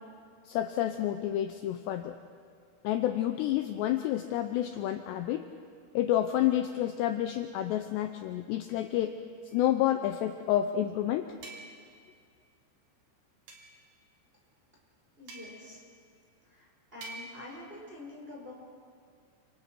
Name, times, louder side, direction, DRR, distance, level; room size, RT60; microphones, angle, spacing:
voice 1, 0.5-2.2 2.8-5.5 5.9-9.2 9.5-11.3, left 12 dB, 80° left, 7 dB, 2.6 m, -29 dB
sound 1, 9.5-9.7 11.4-12.0 13.5-13.8 15.3-15.8 17.0-17.5, right 2 dB, 55° right, 4.6 m, -47 dB
voice 2, 15.2-15.8 16.5-18.5, left 2 dB, 10° right, -4 dB, 4.8 m, -46 dB
29.0 x 27.0 x 4.5 m, 2.2 s
omnidirectional pair, 5.6 m